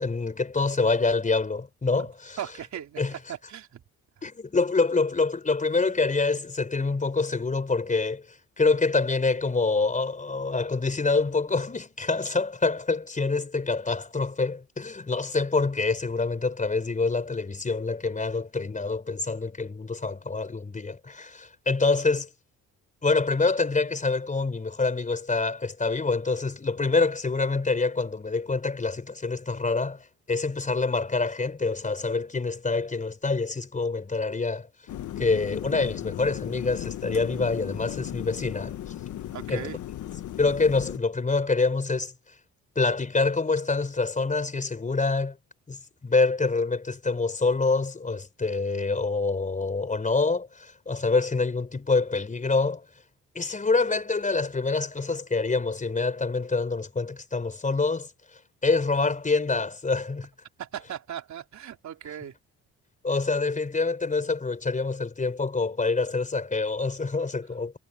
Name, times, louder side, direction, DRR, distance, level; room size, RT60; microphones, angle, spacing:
voice 1, 0.0-2.4 3.0-3.1 4.2-22.3 23.0-34.7 35.2-38.8 39.5-39.7 40.4-42.1 42.8-45.4 45.7-52.8 53.3-60.3 63.0-67.8, left 3 dB, 25° left, 4.2 m, -26 dB
voice 2, 2.4-3.8 4.2-4.3 39.3-39.8 60.6-62.4, right 10 dB, 65° right, 3.8 m, -38 dB
sound 1, 34.9-41.0, left 12 dB, 75° left, 1.6 m, -36 dB
cardioid pair, 90°, 30 cm